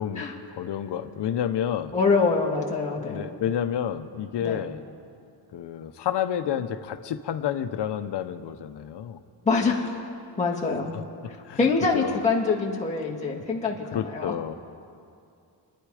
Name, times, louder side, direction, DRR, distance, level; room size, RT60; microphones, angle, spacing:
voice 1, 0.0-1.9 3.0-4.8 5.5-9.2 10.9-12.2 13.1-13.4 13.9-14.5, left 9 dB, 70° left, 10 dB, 0.9 m, -30 dB
voice 2, 1.9-3.3 4.4-4.6 9.5-10.0 10.4-10.9 11.6-14.3, left 4 dB, 15° left, -5 dB, 2.2 m, -25 dB
27.5 x 10.5 x 5.0 m, 2.5 s
wide cardioid pair, 150°, 43 cm